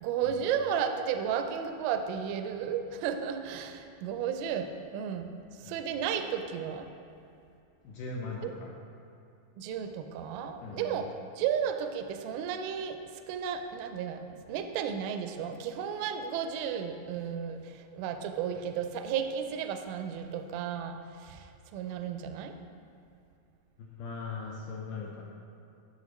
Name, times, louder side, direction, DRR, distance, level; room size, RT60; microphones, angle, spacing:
voice 1, 0.0-5.3 5.6-6.9 8.4-8.5 9.6-13.0 13.3-14.2 14.5-22.5, right 8 dB, 80° right, 7 dB, 2.2 m, -33 dB
voice 2, 7.8-8.7 10.6-11.0 23.8-25.2, left 4 dB, 80° left, -2 dB, 2.0 m, -39 dB
9.7 x 6.2 x 3.1 m, 2.6 s
omnidirectional pair, 4.4 m